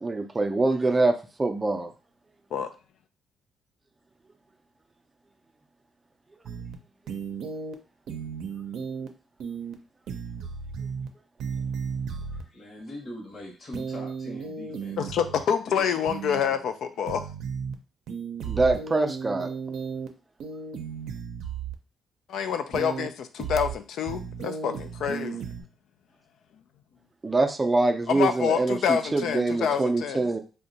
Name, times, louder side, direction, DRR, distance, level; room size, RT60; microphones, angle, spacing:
voice 1, 0.0-1.9 18.5-19.5 27.2-30.4, right 2 dB, 20° right, 0.4 m, -24 dB
sound 1, 6.5-6.7 7.1-7.7 8.1-9.1 9.4-9.7 10.1-11.1 11.4-12.4 13.7-15.4 16.1-16.4 17.1-17.7 18.1-20.1 20.4-21.8 22.7-23.1 23.4-23.7 24.1-25.6, right 6 dB, 75° right, 0.5 m, -34 dB
voice 2, 12.3-15.3 15.7-16.2 16.5-16.6, left 1 dB, 40° left, 0.9 m, -42 dB
voice 3, 15.0-17.2 22.3-25.4 28.1-30.3, left 7 dB, 75° left, 0.4 m, -27 dB
2.7 x 2.2 x 3.9 m
cardioid pair, 90°, 0 cm